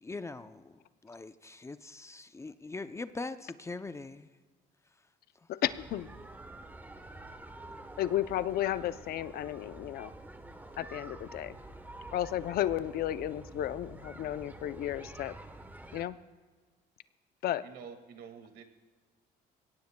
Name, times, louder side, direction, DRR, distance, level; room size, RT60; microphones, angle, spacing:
voice 1, 0.0-4.3, left 3 dB, 15° left, 11 dB, 0.5 m, -42 dB
voice 2, 5.5-6.1 8.0-10.1 10.8-11.6 12.1-15.3 15.9-16.2 17.4-17.6, left 12 dB, 65° left, 14 dB, 0.6 m, -33 dB
sound 1, 5.6-16.1, right 2 dB, 10° right, 1.0 m, -48 dB
voice 3, 17.6-18.6, right 7 dB, 70° right, 6 dB, 1.9 m, -48 dB
22.0 x 17.5 x 2.3 m, 1.4 s
cardioid pair, 110°, 17 cm